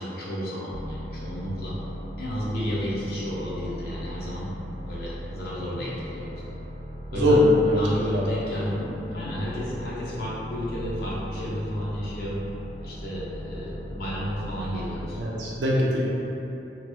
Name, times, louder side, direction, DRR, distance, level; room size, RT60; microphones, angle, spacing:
voice 1, 0.0-1.8 2.2-4.5 4.9-6.4 7.1-12.4 12.8-15.2, equal, 60° left, -7 dB, 0.6 m, -31 dB
sound 1, 0.7-15.4, equal, 25° left, 0.9 m, -38 dB
voice 2, 7.1-7.8 8.1-8.2 15.2-16.0, left 1 dB, 85° right, -5 dB, 0.5 m, -21 dB
2.8 x 2.3 x 2.9 m, 3.0 s
head